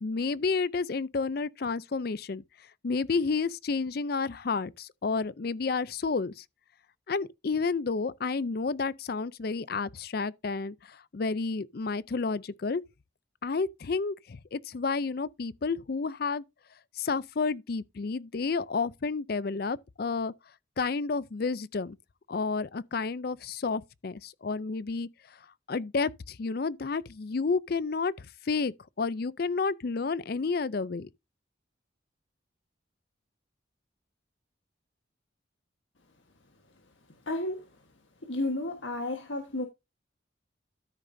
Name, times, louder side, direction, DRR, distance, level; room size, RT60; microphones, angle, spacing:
voice 1, 0.0-2.4 2.8-6.4 7.1-12.8 13.4-16.4 17.0-20.3 20.8-22.0 22.3-25.1 25.7-31.1, left 4 dB, 50° left, 0.5 m, -30 dB
voice 2, 37.3-37.6 38.2-39.7, left 2 dB, 75° left, 1.4 m, -32 dB
13.0 x 6.5 x 2.7 m
head